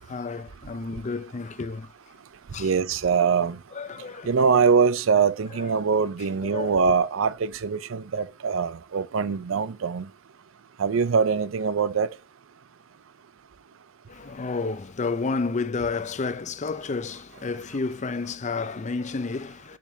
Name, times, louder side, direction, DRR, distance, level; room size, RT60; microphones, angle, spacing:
voice 1, 0.1-1.9 2.5-2.7 3.7-4.3 5.5-5.7 6.2-6.9 14.1-19.8, left 4 dB, 35° left, 0.5 m, -31 dB
voice 2, 2.6-3.6 4.3-10.1 10.8-12.1, right 5 dB, 75° right, 0.5 m, -23 dB
6.9 x 5.2 x 2.7 m
head